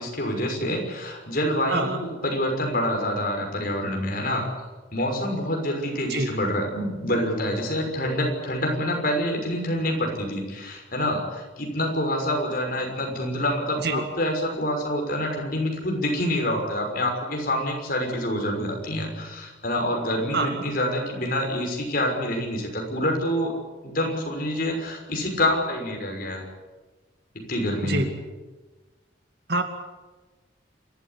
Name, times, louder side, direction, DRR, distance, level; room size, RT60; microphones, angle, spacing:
voice 1, 0.0-4.4 4.9-23.5 23.8-26.4 27.5-28.1, left 1 dB, 50° left, 2 dB, 6.1 m, -27 dB
voice 2, 20.3-20.6 27.8-28.1 29.5-29.6, right 2 dB, 55° right, 6 dB, 2.4 m, -25 dB
27.5 x 13.5 x 9.9 m, 1.2 s
head